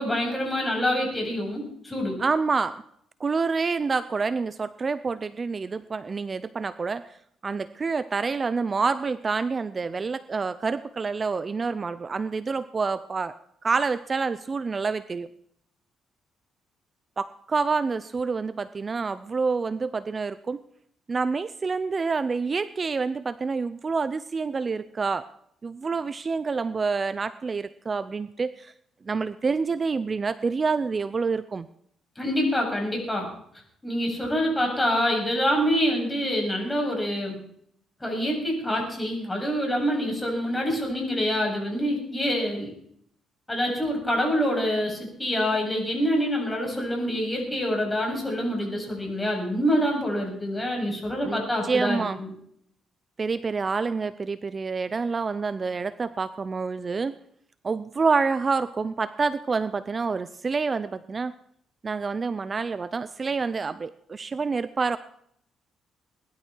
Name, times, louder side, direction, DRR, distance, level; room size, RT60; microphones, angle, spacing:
voice 1, 0.0-2.2 32.2-33.3 33.8-37.4 38.0-42.7 43.5-52.3, equal, 15° left, 0 dB, 7.9 m, -26 dB
voice 2, 2.2-2.8 3.2-7.2 7.4-13.3 13.6-15.3 17.2-20.6 21.1-25.3 25.6-28.7 29.1-31.7 51.2-51.4 51.6-52.2 53.2-57.2 57.6-61.3 61.8-65.0, right 4 dB, 35° right, 14 dB, 0.6 m, -27 dB
21.0 x 12.5 x 4.6 m, 0.68 s
cardioid pair, 90°, 0 cm